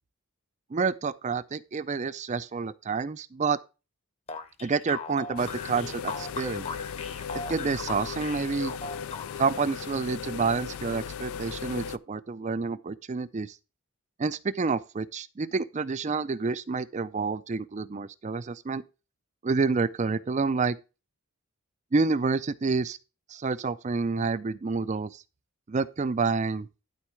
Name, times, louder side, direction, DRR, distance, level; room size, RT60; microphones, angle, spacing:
voice 1, 0.7-3.6 4.6-6.7 7.3-8.7 9.4-13.6 14.2-18.8 19.4-20.8 21.9-23.0 23.3-25.2 25.7-26.7, right 4 dB, 30° right, 0.4 m, -28 dB
sound 1, 4.3-9.6, left 4 dB, 30° left, 0.9 m, -38 dB
sound 2, 5.4-12.0, left 7 dB, 75° left, 0.4 m, -37 dB
12.0 x 4.7 x 4.5 m
head